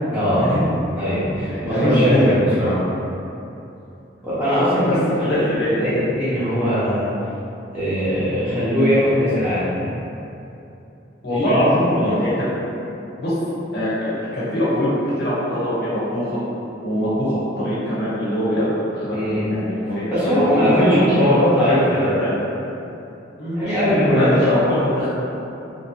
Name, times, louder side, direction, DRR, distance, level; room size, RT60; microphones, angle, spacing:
voice 1, 0.1-0.5 1.0-2.8 4.2-5.4 5.7-7.1 7.7-9.9 11.3-11.9 19.1-19.5 20.1-22.2 23.5-24.5, equal, 10° right, -13 dB, 0.9 m, -20 dB
voice 2, 1.5-2.2 4.9-5.0 5.3-5.8 11.2-12.5 13.2-13.3 13.7-14.9 15.2-16.4 16.8-20.4 20.7-22.4 23.4-25.1, left 1 dB, 55° left, -10 dB, 0.9 m, -22 dB
3.0 x 2.7 x 2.8 m, 2.8 s
head